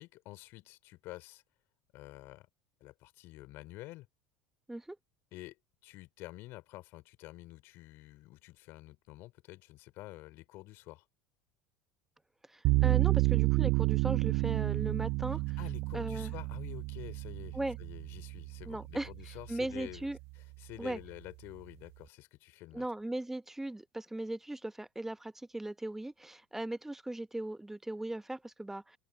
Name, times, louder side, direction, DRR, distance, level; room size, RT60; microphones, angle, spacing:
voice 1, 0.0-1.4 1.9-2.5 2.8-4.1 5.3-11.1 15.6-20.1 20.3-22.8, left 19 dB, 55° left, 4.5 m, -49 dB
voice 2, 12.5-15.6 15.9-16.3 17.5-17.8 18.7-19.1 19.5-20.2 20.8-21.0 22.7-29.0, right 1 dB, 5° right, 1.0 m, -38 dB
sound 1, 12.6-19.7, right 26 dB, 55° right, 0.5 m, -30 dB
figure-of-eight pair, 75°, 5 cm